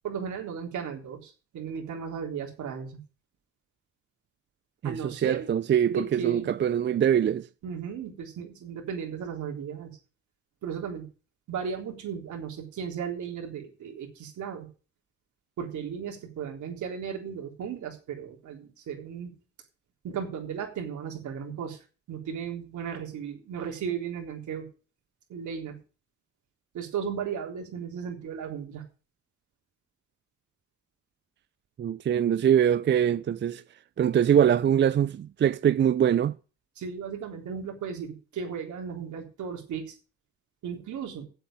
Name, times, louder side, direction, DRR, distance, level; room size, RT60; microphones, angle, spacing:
voice 1, 0.0-3.0 4.8-5.5 5.8-6.5 7.6-9.9 10.6-11.0 11.5-14.7 15.6-19.4 20.0-21.8 22.1-24.7 25.3-25.8 26.7-28.8 36.8-40.0 40.6-41.3, right 7 dB, 75° right, 3.8 m, -35 dB
voice 2, 4.8-7.5 31.8-33.6 34.0-36.3, right 9 dB, 40° right, 0.5 m, -23 dB
8.0 x 7.9 x 8.5 m
cardioid pair, 90°, 30 cm